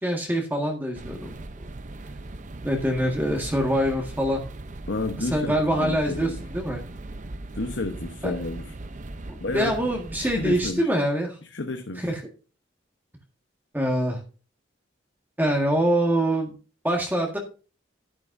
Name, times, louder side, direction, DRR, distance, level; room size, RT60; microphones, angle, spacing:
voice 1, 0.0-1.3 2.6-4.4 5.2-6.8 8.2-8.3 9.3-11.4 12.0-12.2 13.7-14.2 15.4-16.5 16.8-17.4, equal, 10° right, 1.7 m, -24 dB
sound 1, 0.9-10.7, right 2 dB, 40° right, 0.7 m, -39 dB
voice 2, 4.9-6.4 7.6-8.7 9.4-9.7 10.2-10.9 11.5-12.1, left 2 dB, 70° left, 1.0 m, -31 dB
11.5 x 10.5 x 2.6 m
head